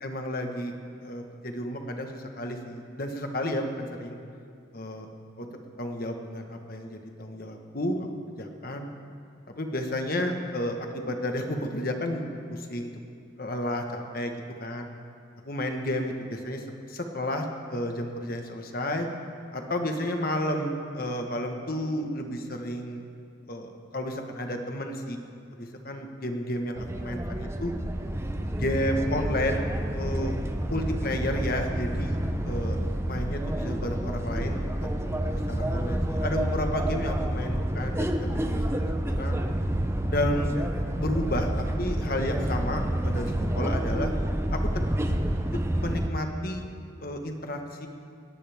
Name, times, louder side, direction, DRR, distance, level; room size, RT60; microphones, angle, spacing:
voice 1, 0.0-0.7 1.0-4.2 4.7-5.1 5.4-5.5 5.8-8.1 8.4-8.9 9.5-12.2 12.5-12.9 13.4-14.3 14.6-14.9 15.4-19.1 19.5-23.0 23.5-25.2 25.6-27.7 28.6-30.4 30.7-32.2 32.4-32.8 33.1-38.8 39.1-39.4 40.1-40.6 41.0-41.5 41.8-44.1 44.5-44.7 45.8-46.6 47.0-47.9, left 1 dB, 45° left, 4 dB, 1.4 m, -32 dB
sound 1, 26.8-46.1, right 1 dB, 15° right, 0.6 m, -29 dB
19.5 x 18.0 x 3.6 m, 2.3 s
head